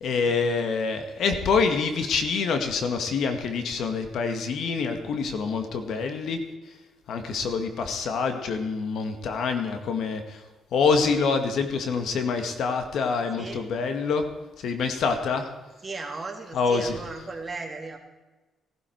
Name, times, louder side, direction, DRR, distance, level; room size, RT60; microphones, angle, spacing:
voice 1, 0.0-6.4 7.1-10.4 10.7-14.2 14.6-15.5 16.5-17.0, left 5 dB, 70° left, 6 dB, 1.9 m, -26 dB
voice 2, 15.8-18.0, right 3 dB, 25° right, 2 dB, 2.7 m, -36 dB
18.0 x 12.0 x 4.7 m, 1.2 s
cardioid pair, 90°, 0 cm